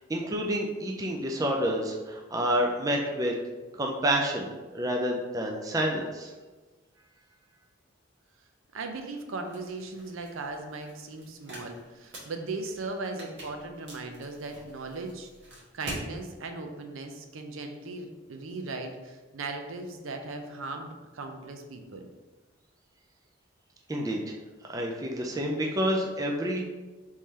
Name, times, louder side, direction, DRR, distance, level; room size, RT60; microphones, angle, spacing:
voice 1, 0.0-3.3 3.8-6.3 23.9-24.2 24.7-26.6, equal, 15° right, 1 dB, 0.4 m, -29 dB
voice 2, 8.7-15.3 15.7-22.1, right 3 dB, 75° right, 5 dB, 0.5 m, -38 dB
sound 1, 9.4-16.1, right 1 dB, 55° right, 1.4 m, -45 dB
3.7 x 3.2 x 4.1 m, 1.2 s
head